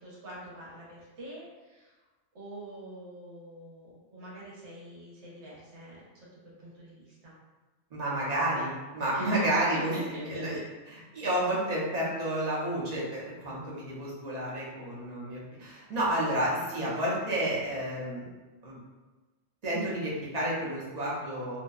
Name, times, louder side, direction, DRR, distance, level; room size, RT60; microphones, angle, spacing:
voice 1, 0.0-1.9 2.3-6.0 6.6-7.3 9.1-9.4 9.9-10.0 10.3-10.4, right 1 dB, 75° right, -7 dB, 1.2 m, -46 dB
voice 2, 7.9-10.6 10.9-18.2 18.6-18.8 19.6-21.6, right 1 dB, 40° right, -7 dB, 0.7 m, -30 dB
2.6 x 2.1 x 2.3 m, 1.2 s
omnidirectional pair, 1.2 m